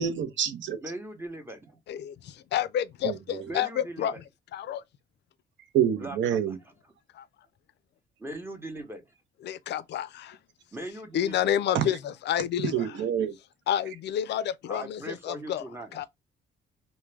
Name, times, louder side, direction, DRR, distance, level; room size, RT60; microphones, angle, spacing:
voice 1, 0.0-0.8 3.0-3.5 5.7-6.6 11.7-11.9 12.6-13.4, right 9 dB, 70° right, 0.6 m, -27 dB
voice 2, 0.8-1.8 3.5-4.2 6.0-6.5 8.2-9.0 10.7-11.5 14.7-16.1, right 1 dB, 10° right, 0.8 m, -40 dB
voice 3, 1.9-4.1 4.5-4.8 7.2-7.3 9.4-10.4 11.1-12.7 13.7-15.6 15.9-16.1, left 10 dB, 60° left, 0.4 m, -29 dB
2.3 x 2.2 x 3.1 m
cardioid pair, 90°, 20 cm